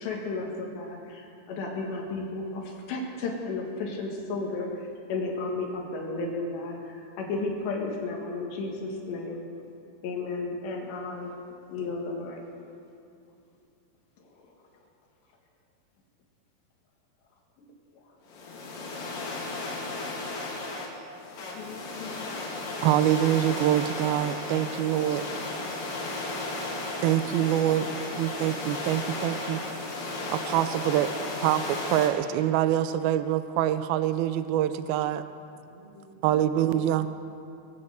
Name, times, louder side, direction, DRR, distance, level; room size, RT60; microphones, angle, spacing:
voice 1, 0.0-4.7 5.1-9.4 10.0-11.3 11.7-12.4 21.5-22.3, left 3 dB, 80° left, 0 dB, 3.9 m, -33 dB
sound 1, 18.3-32.1, left 2 dB, 60° left, 3.6 m, -34 dB
voice 2, 22.8-25.2 27.0-27.9 28.1-29.6 30.3-31.1 31.4-35.2 36.2-37.1, right 12 dB, 85° right, 12 dB, 2.2 m, -25 dB
voice 3, 35.5-37.1, right 2 dB, 25° right, -2 dB, 0.4 m, -52 dB
23.0 x 7.8 x 7.8 m, 2.6 s
omnidirectional pair, 4.9 m